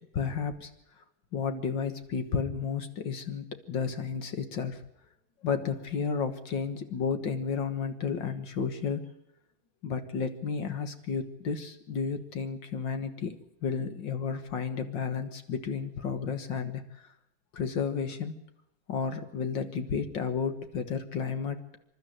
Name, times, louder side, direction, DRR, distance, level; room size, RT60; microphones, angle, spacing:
voice 1, 0.1-0.7 1.0-1.1 1.3-4.8 5.4-9.1 9.8-17.1 17.5-18.3 18.9-21.8, left 6 dB, 60° left, 8 dB, 2.1 m, -32 dB
27.0 x 12.5 x 9.1 m, 0.85 s
omnidirectional pair, 2.3 m